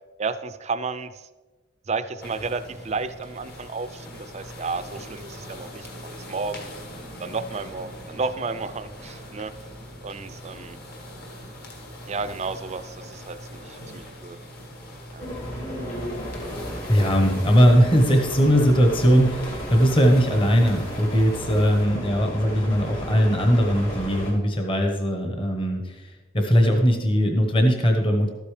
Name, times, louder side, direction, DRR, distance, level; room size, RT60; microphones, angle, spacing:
voice 1, 0.2-1.3 1.9-6.8 7.2-9.5 10.0-10.8 12.1-14.4 15.1-15.3, right 4 dB, 35° right, 11 dB, 0.4 m, -32 dB
sound 1, 2.2-21.9, equal, 50° left, 1.6 m, -42 dB
sound 2, 15.2-24.3, equal, 70° left, 2.6 m, -34 dB
voice 2, 16.9-28.3, equal, 25° left, 3 dB, 1.0 m, -20 dB
12.5 x 8.3 x 3.3 m, 1.2 s
head